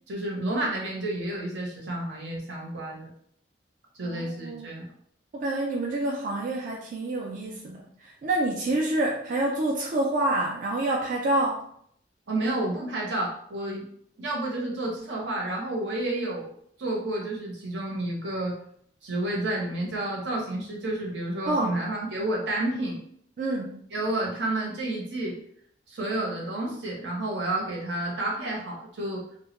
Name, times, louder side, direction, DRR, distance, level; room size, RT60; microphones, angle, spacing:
voice 1, 0.1-3.1 3.9-4.9 12.3-13.9 14.2-16.5 16.8-18.6 19.0-23.0 23.9-25.3 25.9-29.2, right 1 dB, 75° right, -2 dB, 0.8 m, -30 dB
voice 2, 4.0-4.8 5.3-11.7 21.5-21.7 23.4-23.8, right 2 dB, 45° right, -2 dB, 0.3 m, -27 dB
2.1 x 2.0 x 3.0 m, 0.66 s
head